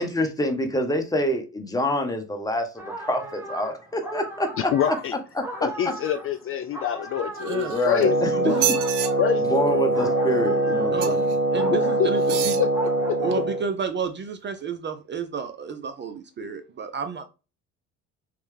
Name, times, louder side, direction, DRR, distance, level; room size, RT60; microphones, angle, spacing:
voice 1, 0.0-5.0 5.4-5.7 7.7-8.5 9.4-11.3, left 1 dB, 10° left, 1.0 m, -26 dB
sound 1, 2.8-13.6, right 1 dB, 5° right, 1.4 m, -38 dB
voice 2, 4.7-5.1 5.6-8.6 9.2-10.2 11.7-12.1 12.6-12.9 16.4-16.5, left 9 dB, 40° left, 0.4 m, -27 dB
voice 3, 7.4-7.8 8.3-8.7 10.9-11.2 11.5-12.7 13.2-17.2, right 6 dB, 30° right, 0.5 m, -31 dB
sound 2, 7.4-8.1 8.5-9.1 11.0-11.3 12.2-12.7 13.3-13.4, right 12 dB, 85° right, 0.5 m, -28 dB
Wind instrument woodwind instrument, 8.0-13.7, right 2 dB, 65° right, 2.1 m, -23 dB
3.3 x 3.1 x 3.2 m
hypercardioid pair, 70°, 36 cm